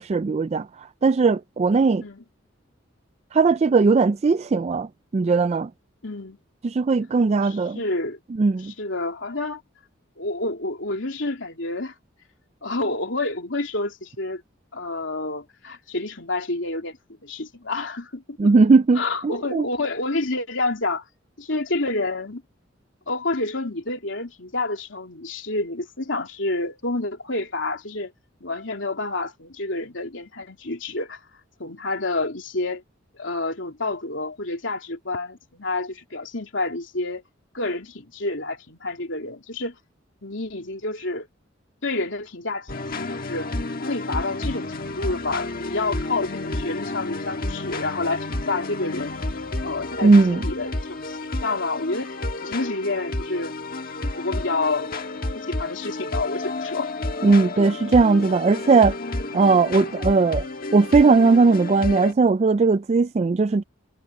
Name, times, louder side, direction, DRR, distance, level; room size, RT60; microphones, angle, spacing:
voice 1, 0.0-2.0 3.3-5.7 6.6-7.8 8.4-8.7 18.4-19.7 50.0-50.4 57.2-59.0 59.3-60.5 60.7-63.6, right 4 dB, 35° right, 0.3 m, -18 dB
voice 2, 6.0-6.4 7.4-8.2 8.6-9.6 10.2-11.9 12.6-14.4 14.7-17.0 17.2-18.5 19.0-21.0 21.4-22.4 23.1-28.1 28.4-31.2 31.6-32.8 33.1-37.2 37.5-39.8 40.2-41.3 41.8-42.7 43.0-43.6 43.8-49.1 49.6-52.2 52.4-53.5 54.2-55.0 55.3-56.9 57.3-57.8, left 2 dB, 70° left, 3.5 m, -29 dB
sound 1, 42.7-62.1, left 2 dB, 50° left, 1.6 m, -31 dB
head